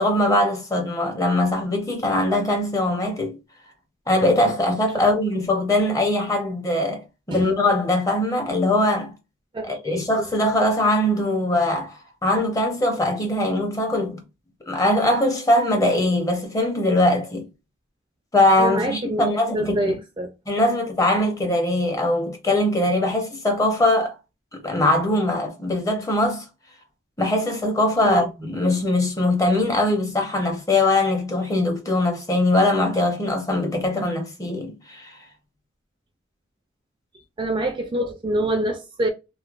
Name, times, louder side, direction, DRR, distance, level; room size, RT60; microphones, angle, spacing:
voice 1, 0.0-3.4 4.1-9.1 9.7-14.2 14.7-17.5 18.3-20.0 20.5-24.2 24.5-26.4 27.2-35.1, left 1 dB, 15° left, 0.7 m, -21 dB
voice 2, 9.5-10.0 18.6-19.2 19.5-20.3 28.0-28.3 37.4-39.1, right 1 dB, 25° right, 0.4 m, -26 dB
3.1 x 2.1 x 2.4 m
head